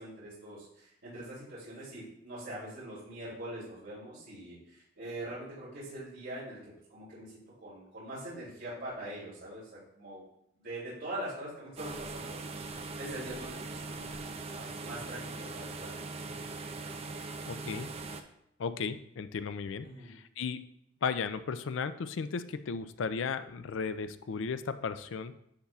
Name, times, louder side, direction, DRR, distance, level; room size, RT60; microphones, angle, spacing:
voice 1, 0.0-10.2 10.5-16.0 19.8-20.1, right 1 dB, 70° right, -9 dB, 3.0 m, -43 dB
sound 1, 11.8-18.2, right 3 dB, 30° right, 0.5 m, -41 dB
voice 2, 17.5-17.9 18.6-20.6 21.0-25.3, left 5 dB, 75° left, 12 dB, 0.4 m, -35 dB
10.5 x 5.5 x 2.4 m, 0.76 s
head